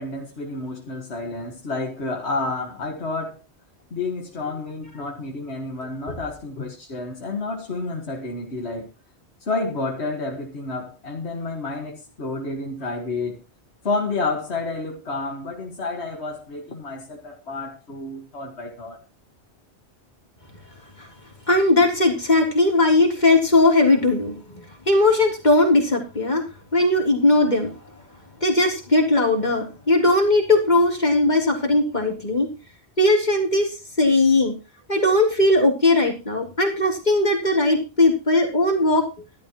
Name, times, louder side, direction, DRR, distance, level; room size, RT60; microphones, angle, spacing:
voice 1, 0.0-3.4 3.9-8.9 9.4-13.4 13.8-19.0, left 3 dB, 80° left, 2.1 m, -30 dB
voice 2, 21.5-26.4 26.7-27.7 28.4-32.5 33.0-33.7 34.0-34.5 34.9-39.1, left 2 dB, 40° left, 3.6 m, -19 dB
15.0 x 12.5 x 3.1 m
omnidirectional pair, 1.1 m